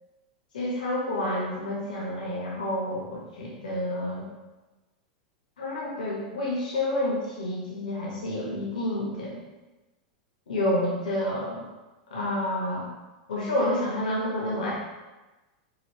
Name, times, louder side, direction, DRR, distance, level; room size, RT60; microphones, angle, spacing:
voice 1, 0.5-4.3 5.6-9.4 10.5-11.6 12.1-12.8 13.3-14.7, left 1 dB, 85° left, -4 dB, 1.0 m, -29 dB
5.0 x 2.4 x 3.1 m, 1.1 s
hypercardioid pair, 100°, 4 cm